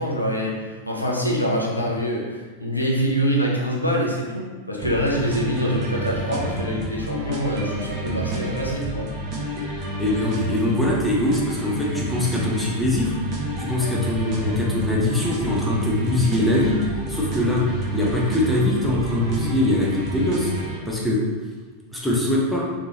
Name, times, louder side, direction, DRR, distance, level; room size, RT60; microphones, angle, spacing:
voice 1, 0.0-9.1, equal, 85° left, -3 dB, 0.7 m, -25 dB
sound 1, 4.8-20.8, right 2 dB, 40° right, 0.7 m, -29 dB
voice 2, 10.0-13.1 13.6-16.8 17.1-17.7 17.9-20.5 20.9-21.3 21.9-22.7, left 2 dB, ahead, -5 dB, 0.8 m, -22 dB
3.4 x 3.4 x 2.9 m, 1.3 s
figure-of-eight pair, 90°, 0 cm